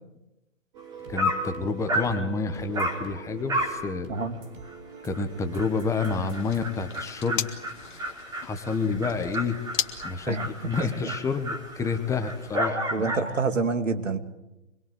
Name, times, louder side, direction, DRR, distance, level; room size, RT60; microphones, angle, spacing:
sound 1, 0.7-8.1, right 5 dB, 35° right, 3.9 m, -44 dB
Dog, 0.8-0.9 1.2-1.5 1.9-2.2 2.7-3.0 3.5-3.8 4.2-4.3 4.7-4.8 5.1-5.2 5.5-13.3, equal, 10° right, 4.1 m, -32 dB
voice 1, 1.1-4.1 5.0-7.5 8.4-9.6 10.0-10.4 10.6-13.1, left 4 dB, 10° left, 7 dB, 1.2 m, -29 dB
sound 2, 6.1-11.2, left 10 dB, 40° left, 2.0 m, -37 dB
voice 2, 10.8-11.1 12.9-14.2, right 4 dB, 75° right, 8 dB, 2.6 m, -27 dB
25.5 x 23.0 x 8.0 m, 0.95 s
hypercardioid pair, 140°, 38 cm